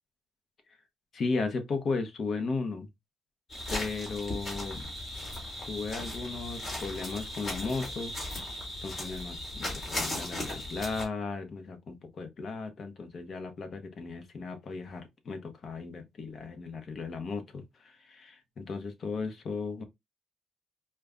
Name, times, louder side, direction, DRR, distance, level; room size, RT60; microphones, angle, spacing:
voice 1, 1.1-2.9 3.7-4.9 5.6-8.1 8.8-19.8, left 4 dB, 50° left, 0.8 m, -36 dB
sound 1, 3.5-11.1, left 1 dB, 30° left, 2.0 m, -37 dB
4.9 x 2.2 x 2.3 m
cardioid pair, 90°, 0 cm